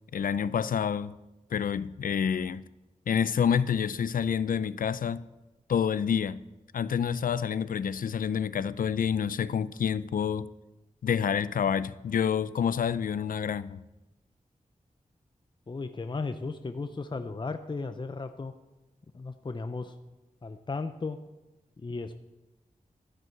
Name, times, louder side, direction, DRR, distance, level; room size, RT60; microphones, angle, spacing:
voice 1, 0.1-1.2 1.5-2.7 3.1-5.3 5.7-6.4 6.7-10.5 11.0-13.8, left 7 dB, 85° left, 0.4 m, -28 dB
voice 2, 15.7-18.5 19.1-19.9 20.4-21.2 21.8-22.1, left 3 dB, 35° left, 0.6 m, -35 dB
12.5 x 7.7 x 6.6 m
wide cardioid pair, 75°, 14 cm